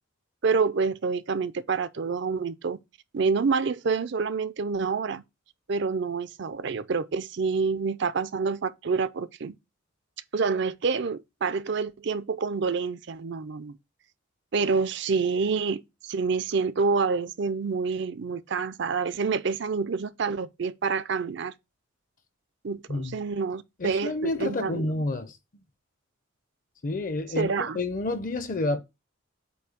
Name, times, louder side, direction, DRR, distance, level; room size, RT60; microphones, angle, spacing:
voice 1, 0.4-2.8 3.1-5.2 5.7-9.5 10.3-13.8 14.5-21.5 22.6-25.1 27.4-27.8, right 5 dB, 60° right, 0.5 m, -27 dB
voice 2, 22.9-23.2 23.8-25.3 26.8-28.8, left 2 dB, 40° left, 0.6 m, -29 dB
8.1 x 2.7 x 5.0 m
head